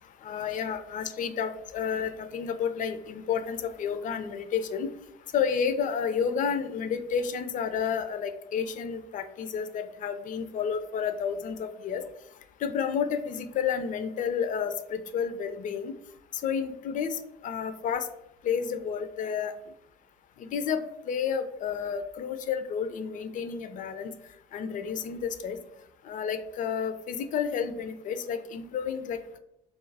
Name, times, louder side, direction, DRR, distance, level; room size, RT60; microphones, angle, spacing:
voice 1, 0.2-4.9 5.3-12.0 12.6-16.0 16.4-18.1 18.4-19.5 20.4-24.1 24.5-25.6 26.0-29.4, left 7 dB, 45° left, 9 dB, 0.4 m, -31 dB
2.4 x 2.0 x 3.2 m, 0.82 s
supercardioid pair, 70°, 19 cm